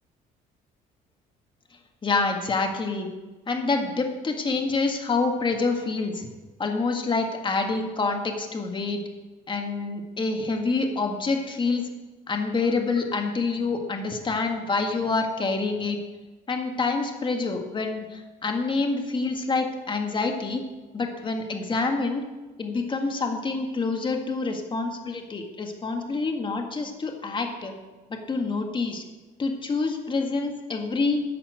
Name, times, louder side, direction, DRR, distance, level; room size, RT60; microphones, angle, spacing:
voice 1, 1.7-3.1 3.5-6.3 6.6-9.0 9.5-11.9 12.3-16.0 16.5-20.6 20.9-22.3 22.6-27.8 28.1-29.0 29.4-31.2, left 3 dB, 30° left, 4 dB, 1.7 m, -27 dB
11.5 x 5.7 x 8.2 m, 1.2 s
cardioid pair, 110°, 17 cm